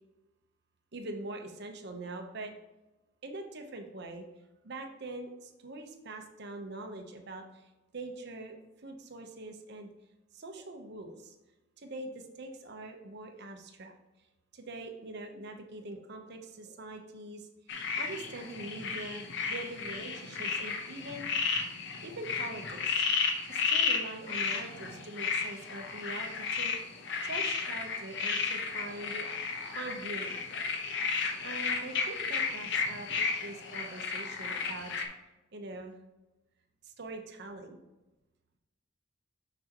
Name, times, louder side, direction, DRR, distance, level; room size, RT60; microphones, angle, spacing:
voice 1, 0.9-2.5 3.2-4.3 4.6-7.4 7.9-9.9 10.3-11.3 11.8-14.0 14.5-17.5 18.0-21.3 22.0-23.1 23.5-26.8 27.2-29.3 29.7-30.4 31.4-34.9 35.5-35.9 36.8-37.8, right 2 dB, 55° right, 5 dB, 0.9 m, -43 dB
sound 1, 17.7-35.0, left 5 dB, 65° left, 0.9 m, -33 dB
6.6 x 6.1 x 3.0 m, 1.0 s
head